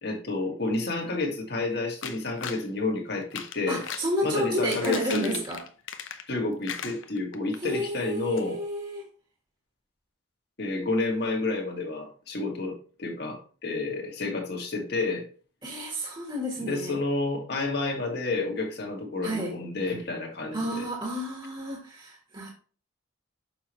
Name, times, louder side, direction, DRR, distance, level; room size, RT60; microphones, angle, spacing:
voice 1, 0.0-3.8 4.2-5.4 6.3-8.6 10.6-15.2 16.6-20.9, left 3 dB, 50° left, 2 dB, 1.8 m, -30 dB
sound 1, 2.0-2.7 3.2-4.1 4.5-6.4 6.6-7.6 7.9-8.0 8.4-8.5, left 8 dB, 75° left, 0.8 m, -38 dB
voice 2, 3.7-5.6 7.5-9.1 15.6-17.0 19.2-19.6 20.5-22.5, equal, 25° right, -1 dB, 1.4 m, -31 dB
7.0 x 5.7 x 3.1 m, 0.39 s
head